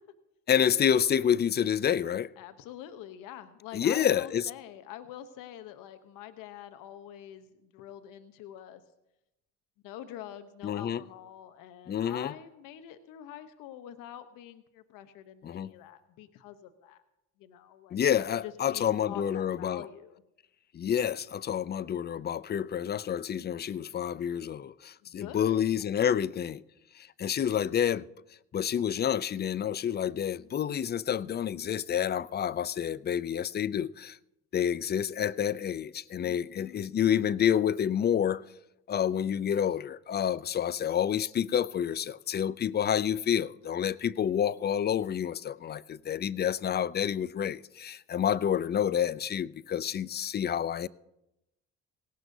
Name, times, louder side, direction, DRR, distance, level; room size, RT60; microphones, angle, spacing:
voice 1, 0.5-2.3 3.7-4.4 10.6-11.0 11.9-12.3 15.4-15.7 17.9-19.9 20.7-26.6 27.0-28.1 28.5-34.2 34.5-38.4 38.9-50.9, left 9 dB, 30° left, 0.4 m, -28 dB
voice 2, 2.4-8.8 9.8-17.0 17.4-18.0 18.4-20.2 25.0-25.6 36.2-36.8, left 11 dB, 80° left, 0.9 m, -46 dB
18.0 x 17.0 x 2.7 m
supercardioid pair, 75°, 33 cm